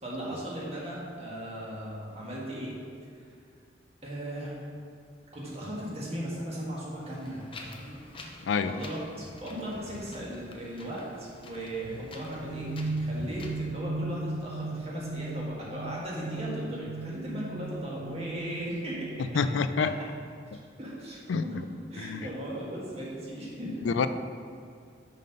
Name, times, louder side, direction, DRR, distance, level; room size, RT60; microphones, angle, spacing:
voice 1, 0.0-2.8 3.1-3.2 4.0-4.6 5.3-8.0 8.6-12.7 13.0-19.2 20.8-23.9, right 1 dB, 35° right, -5 dB, 1.7 m, -37 dB
Wind, 7.1-13.6, left 2 dB, 30° left, 0.6 m, -46 dB
sound 1, 11.8-19.6, right 2 dB, 65° right, 0.7 m, -37 dB
voice 2, 19.3-19.9 21.3-21.6 22.0-22.3 23.9-24.1, left 5 dB, 80° left, 11 dB, 0.4 m, -27 dB
5.6 x 5.5 x 5.3 m, 2.3 s
head